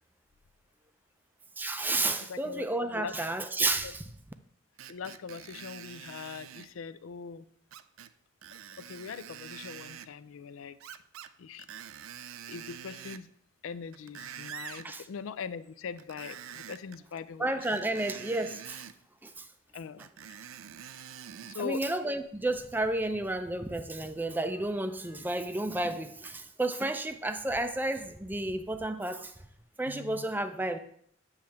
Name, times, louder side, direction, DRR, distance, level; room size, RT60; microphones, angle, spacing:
voice 1, 1.6-4.0 14.8-15.0 17.4-18.8 19.2-19.4 21.6-29.3 29.8-30.8, right 2 dB, 10° right, 0.4 m, -31 dB
voice 2, 2.3-3.1 3.8-3.9 4.9-7.4 8.8-11.0 11.4-11.7 12.5-13.3 13.6-18.0 19.7-20.1 21.5-21.8 29.9-30.3, left 6 dB, 90° left, 0.4 m, -41 dB
Screech, 4.8-6.7 7.7-8.1 8.4-10.1 10.8-11.3 11.6-13.3 13.8-14.9 16.0-17.0 17.6-19.0 20.0-21.6 22.2-22.3, right 9 dB, 85° right, 0.4 m, -46 dB
8.8 x 3.2 x 5.8 m
head